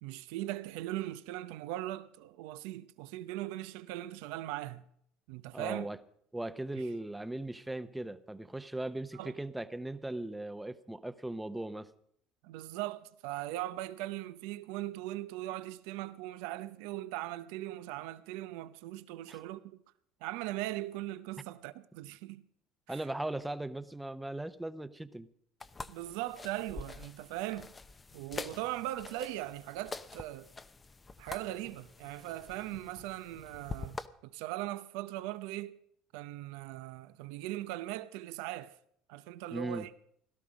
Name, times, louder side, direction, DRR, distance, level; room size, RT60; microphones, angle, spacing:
voice 1, 0.0-4.8 5.3-5.9 6.8-6.9 9.1-9.3 12.4-19.8 20.2-22.4 22.9-23.1 25.9-27.7 28.1-30.5 31.2-35.8 36.1-38.7 39.1-39.9, right 15 dB, 80° right, 0.7 m, -39 dB
voice 2, 5.5-6.0 6.3-11.9 19.3-19.4 22.9-25.3 39.5-39.9, right 1 dB, 5° right, 0.9 m, -38 dB
sound 1, 25.6-34.1, left 3 dB, 20° left, 0.7 m, -46 dB
17.0 x 12.0 x 5.2 m
supercardioid pair, 100°, 0 cm